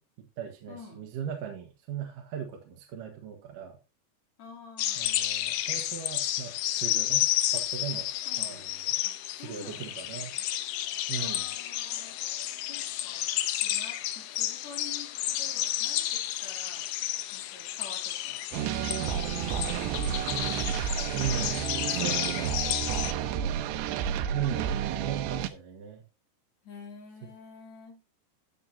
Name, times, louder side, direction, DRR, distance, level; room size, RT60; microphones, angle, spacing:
voice 1, 0.0-3.8 5.0-7.3 7.5-8.9 9.4-10.3 11.1-11.5 21.2-21.6 21.9-22.6 24.3-26.0, right 8 dB, 65° right, 2 dB, 2.5 m, -38 dB
voice 2, 0.7-1.1 4.4-5.1 8.3-8.7 9.0-10.5 11.2-12.2 12.7-16.9 17.3-18.5 19.3-21.3 21.6-24.4 26.6-28.0, left 5 dB, 45° left, 0 dB, 3.7 m, -49 dB
sound 1, 4.8-23.1, left 13 dB, 80° left, 2.1 m, -31 dB
sound 2, 18.5-25.5, right 9 dB, 80° right, 2.9 m, -31 dB
13.5 x 7.7 x 2.8 m, 0.29 s
omnidirectional pair, 5.0 m